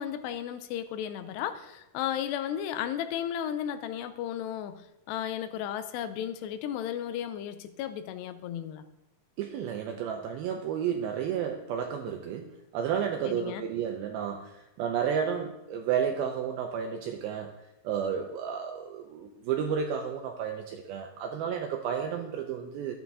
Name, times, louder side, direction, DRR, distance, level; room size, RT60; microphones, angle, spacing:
voice 1, 0.0-4.8 5.1-8.9 13.3-13.6, left 10 dB, 85° left, 11 dB, 2.7 m, -34 dB
voice 2, 9.4-17.5 17.8-23.0, right 8 dB, 85° right, 3 dB, 2.2 m, -32 dB
13.0 x 9.0 x 2.8 m, 0.93 s
omnidirectional pair, 4.9 m